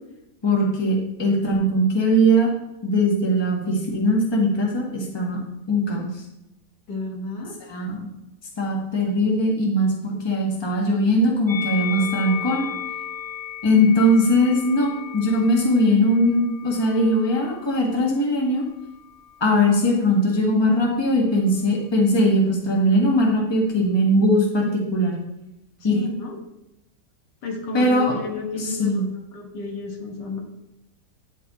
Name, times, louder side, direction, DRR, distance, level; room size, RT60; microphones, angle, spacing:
voice 1, 0.4-2.5 2.8-5.4 5.7-6.1 7.7-8.1 8.6-12.7 13.6-18.6 19.4-25.2 25.8-26.0 27.7-28.1 28.6-29.0, equal, 15° left, -2 dB, 1.3 m, -20 dB
voice 2, 6.9-7.6 25.9-26.3 27.4-29.0 29.3-30.4, left 2 dB, 85° left, 2 dB, 1.9 m, -31 dB
Musical instrument, 11.5-17.9 18.7-19.7, left 9 dB, 55° left, 2.6 m, -35 dB
9.4 x 4.5 x 4.2 m, 0.90 s
omnidirectional pair, 1.8 m